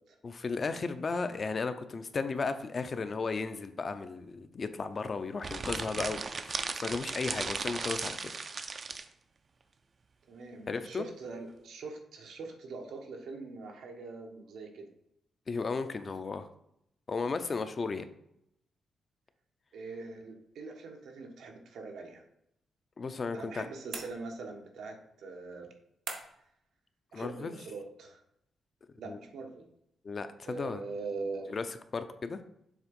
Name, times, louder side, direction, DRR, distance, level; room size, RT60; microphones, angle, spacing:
voice 1, 0.2-8.3 10.7-11.0 15.5-16.5 17.1-18.1 23.0-23.7 27.1-27.5 29.1-29.2 30.0-30.8 31.5-31.6 31.9-32.4, left 4 dB, 30° left, 10 dB, 0.4 m, -35 dB
sound 1, 5.4-9.1, right 4 dB, 35° right, 0.4 m, -36 dB
voice 2, 10.3-14.9 19.7-22.2 23.3-25.7 27.1-28.2 29.0-29.7 30.4-31.5, right 3 dB, 85° right, 2 dB, 1.2 m, -42 dB
sound 2, 23.9-24.6 26.1-26.6, right 4 dB, 65° right, 1.2 m, -42 dB
7.3 x 3.5 x 5.2 m, 0.76 s
wide cardioid pair, 165°, 0 cm